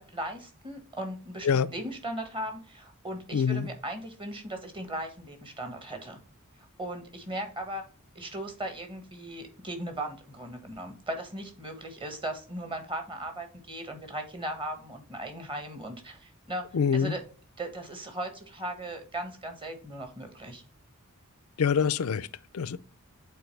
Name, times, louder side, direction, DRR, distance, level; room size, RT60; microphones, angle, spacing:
voice 1, 0.0-6.2 6.8-7.8 8.1-16.7 16.9-17.2 17.6-20.6, right 1 dB, 25° right, 1.5 m, -37 dB
voice 2, 3.3-3.7 16.7-17.1 21.6-22.3 22.5-22.8, left 6 dB, 75° left, 0.4 m, -25 dB
8.4 x 4.1 x 3.2 m
head